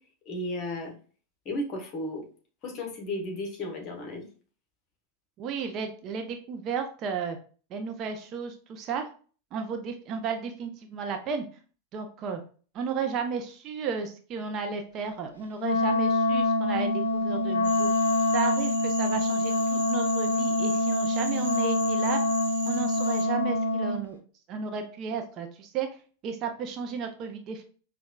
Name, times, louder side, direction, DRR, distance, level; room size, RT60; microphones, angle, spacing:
voice 1, 0.3-0.9 1.4-2.2 2.6-4.3, left 1 dB, 35° left, 2 dB, 1.0 m, -34 dB
voice 2, 5.4-7.4 7.7-9.1 9.5-11.4 11.9-12.4 12.7-17.9 18.3-22.2 22.6-24.2 24.5-25.9 26.2-27.6, right 6 dB, 35° right, 5 dB, 0.5 m, -33 dB
Wind instrument woodwind instrument, 15.6-24.0, left 2 dB, 70° left, 0.4 m, -25 dB
Cricket / Frog, 17.6-23.2, right 3 dB, 50° right, 1.1 m, -39 dB
5.2 x 2.3 x 2.2 m, 0.40 s
figure-of-eight pair, 90°, 0 cm